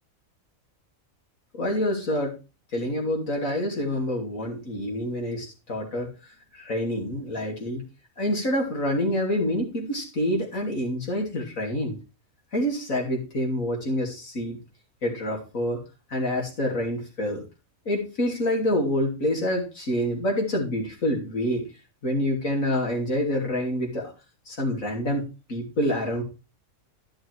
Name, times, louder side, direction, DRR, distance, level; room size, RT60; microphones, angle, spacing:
voice 1, 1.5-2.3 2.7-6.1 6.5-7.8 8.2-12.0 12.5-14.6 15.0-15.8 16.1-17.4 17.8-21.6 22.0-24.1 24.5-26.2, left 1 dB, 75° left, -1 dB, 3.4 m, -27 dB
11.5 x 6.6 x 4.7 m, 0.30 s
omnidirectional pair, 1.4 m